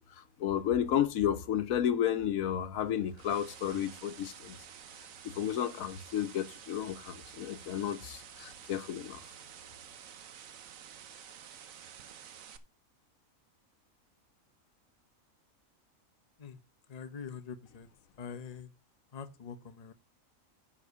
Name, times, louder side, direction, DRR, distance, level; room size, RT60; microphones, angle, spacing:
voice 1, 0.0-4.6 5.3-9.2, left 10 dB, 85° left, 1.2 m, -32 dB
sound 1, 2.8-12.6, right 8 dB, 75° right, 1.3 m, -51 dB
voice 2, 16.9-17.9 18.2-18.7 19.1-19.9, left 6 dB, 35° left, 0.9 m, -44 dB
10.0 x 4.2 x 6.8 m
omnidirectional pair, 1.4 m